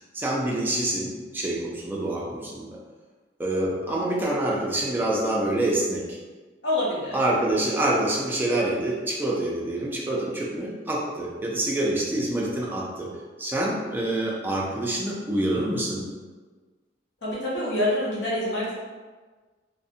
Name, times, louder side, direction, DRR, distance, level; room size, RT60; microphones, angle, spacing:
voice 1, 0.1-2.8 3.4-6.2 7.1-13.1 13.4-16.0, right 1 dB, 10° right, -4 dB, 0.3 m, -26 dB
voice 2, 6.6-7.2 17.2-18.8, left 1 dB, 70° left, -7 dB, 0.8 m, -26 dB
2.5 x 2.0 x 2.6 m, 1.4 s
head